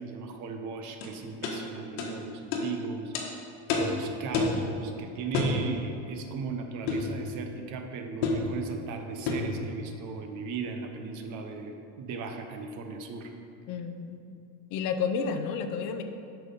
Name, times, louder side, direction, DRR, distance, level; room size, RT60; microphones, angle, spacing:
voice 1, 0.0-3.1 3.7-13.3, right 4 dB, 50° right, 5 dB, 0.9 m, -37 dB
sound 1, 1.0-1.1 1.4-1.6 2.0-2.1 2.5-2.7 3.1-3.3 3.7-3.9 4.3-4.6 5.3-5.6 6.9-7.1 8.2-8.5 9.3-9.5, left 4 dB, 85° left, 1.5 m, -28 dB
voice 2, 13.7-14.2 14.7-16.0, left 6 dB, 50° left, 7 dB, 0.6 m, -31 dB
7.6 x 5.7 x 5.4 m, 2.6 s
cardioid pair, 150°, 38 cm